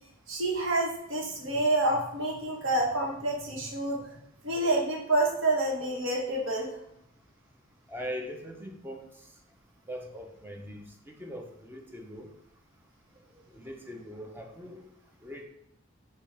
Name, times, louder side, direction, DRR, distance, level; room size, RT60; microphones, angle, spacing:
voice 1, 0.3-4.2 4.4-6.7, right 2 dB, 80° right, -1 dB, 1.0 m, -28 dB
voice 2, 7.9-9.0 9.9-10.8 11.2-12.3 13.5-14.8 15.2-15.4, equal, 10° right, 2 dB, 0.5 m, -40 dB
6.5 x 2.3 x 3.3 m, 0.78 s
head